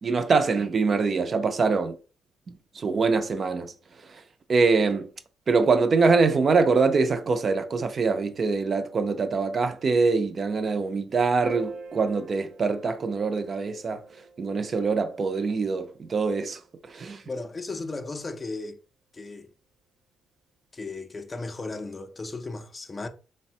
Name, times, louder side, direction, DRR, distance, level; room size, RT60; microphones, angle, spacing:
voice 1, 0.0-1.9 2.8-3.7 4.5-5.1 5.5-14.0 14.4-16.6 16.9-17.2, right 4 dB, 45° right, 0.4 m, -24 dB
Piano, 11.4-18.1, right 5 dB, 80° right, 0.9 m, -45 dB
voice 2, 17.2-18.8 19.1-19.5 20.7-23.1, left 3 dB, 30° left, 0.4 m, -35 dB
3.3 x 2.1 x 2.7 m
cardioid pair, 90°, 0 cm